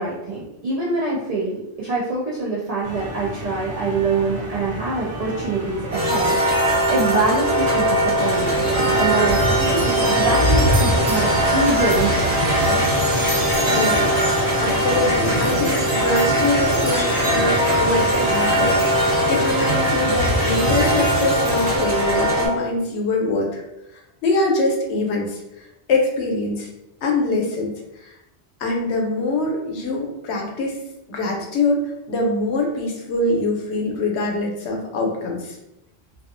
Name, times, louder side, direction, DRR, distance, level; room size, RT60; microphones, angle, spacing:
voice 1, 0.0-8.7 9.0-12.8, right 3 dB, 60° right, -6 dB, 0.4 m, -25 dB
sound 1, 2.8-8.1, right 1 dB, 30° right, 0.7 m, -33 dB
sound 2, 5.9-22.5, equal, 85° right, 1.2 m, -20 dB
Fowl, 8.2-21.8, equal, 35° left, 0.7 m, -26 dB
voice 2, 13.7-23.6 24.2-26.7 27.0-27.7 28.0-28.1 28.6-30.8 31.1-31.8 32.1-35.6, left 2 dB, 75° left, 0 dB, 0.9 m, -24 dB
2.3 x 2.3 x 2.4 m, 0.89 s
omnidirectional pair, 1.1 m